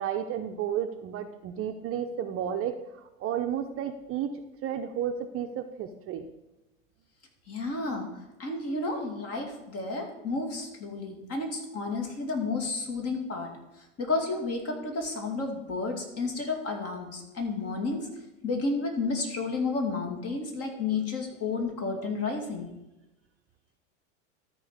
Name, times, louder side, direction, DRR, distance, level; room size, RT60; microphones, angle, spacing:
voice 1, 0.0-4.3 4.6-6.3, right 9 dB, 35° right, 6 dB, 0.7 m, -32 dB
voice 2, 7.5-8.1 8.4-13.5 13.8-18.1 18.4-22.7, left 3 dB, 40° left, 3 dB, 2.4 m, -31 dB
13.5 x 4.5 x 5.0 m, 0.99 s
hypercardioid pair, 100°, 39 cm